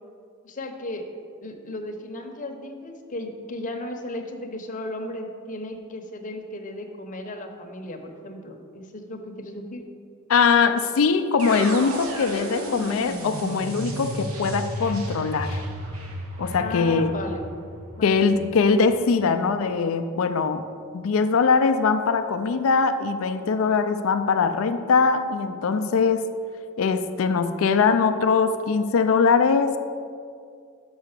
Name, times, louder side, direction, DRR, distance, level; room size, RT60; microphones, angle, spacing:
voice 1, 0.4-1.0 1.4-9.8 16.6-17.4 18.0-18.2, left 1 dB, 35° left, 3 dB, 0.8 m, -35 dB
voice 2, 10.3-15.6 16.4-17.2 18.0-20.6 20.9-26.3 26.8-29.8, left 5 dB, 65° left, 9 dB, 0.4 m, -21 dB
sound 1, 11.4-19.3, right 1 dB, 80° right, 1.1 m, -34 dB
6.1 x 5.6 x 6.6 m, 2.3 s
head